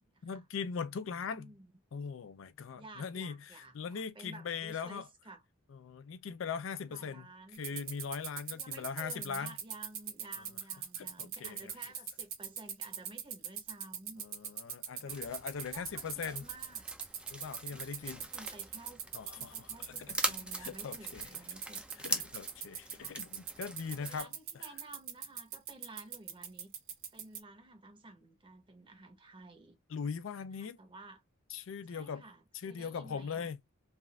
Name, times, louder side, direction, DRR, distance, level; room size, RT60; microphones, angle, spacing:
voice 1, 0.2-1.5 1.9-5.1 5.7-9.5 11.0-11.7 14.2-16.4 17.3-18.2 19.1-21.3 22.0-24.3 24.5-24.6 29.9-30.8 31.5-32.2 32.5-33.6, left 6 dB, 65° left, 0.4 m, -40 dB
voice 2, 1.3-1.7 2.7-5.4 6.9-7.8 8.5-14.2 14.9-15.2 15.6-16.9 17.7-19.0 19.3-21.8 22.9-23.2 24.0-26.7 27.1-29.8 30.5-31.2 31.9-33.5, right 2 dB, 25° right, 0.8 m, -53 dB
sound 1, 7.5-27.4, right 9 dB, 85° right, 1.5 m, -39 dB
sound 2, 15.1-24.2, right 1 dB, 5° right, 0.4 m, -42 dB
3.4 x 2.4 x 2.2 m
head